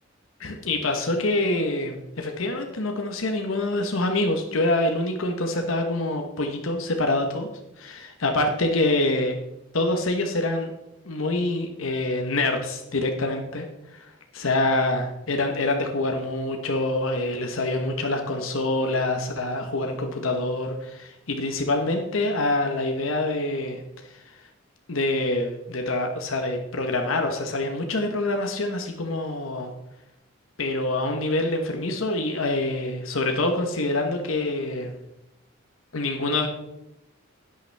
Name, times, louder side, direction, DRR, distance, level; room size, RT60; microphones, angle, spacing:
voice 1, 0.4-7.5 7.8-9.3 9.7-10.7 11.0-24.4 24.9-29.7 30.6-35.0 35.9-36.5, left 2 dB, 85° left, 4 dB, 1.0 m, -26 dB
10.5 x 9.0 x 3.4 m, 0.90 s
head